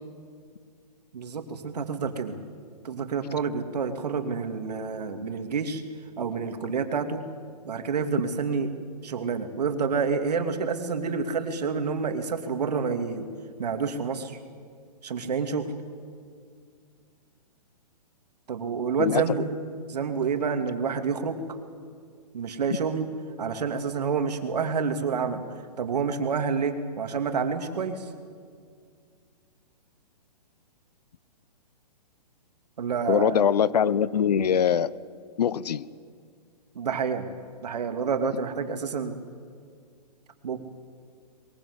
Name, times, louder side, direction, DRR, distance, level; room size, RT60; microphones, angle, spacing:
voice 1, 1.1-2.4 2.8-5.8 6.2-7.3 7.6-8.7 9.0-13.3 13.6-14.4 15.0-15.7 18.5-19.5 19.9-21.4 22.3-23.1 23.4-25.4 25.8-28.1 32.8-33.4 36.7-37.3 37.6-39.2 40.4-40.6, right 5 dB, 70° right, 7 dB, 2.7 m, -28 dB
voice 2, 33.1-34.9 35.4-35.8, left 8 dB, 70° left, 19 dB, 0.9 m, -22 dB
22.5 x 22.0 x 8.2 m, 2.1 s
hypercardioid pair, 150°, 21 cm